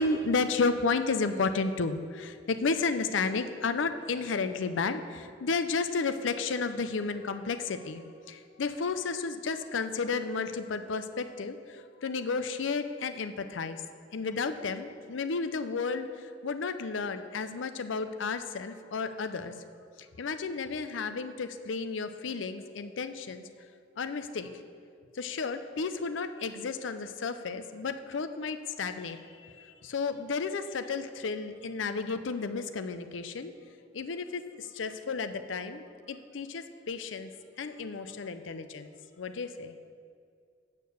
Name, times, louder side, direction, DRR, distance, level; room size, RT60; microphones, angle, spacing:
voice 1, 0.0-13.8 14.1-16.1 16.4-19.5 20.2-23.5 24.0-24.5 25.2-33.5 33.9-37.3 37.6-38.9 39.2-39.7, left 4 dB, 85° left, 9 dB, 0.5 m, -32 dB
8.2 x 6.6 x 6.8 m, 2.3 s
head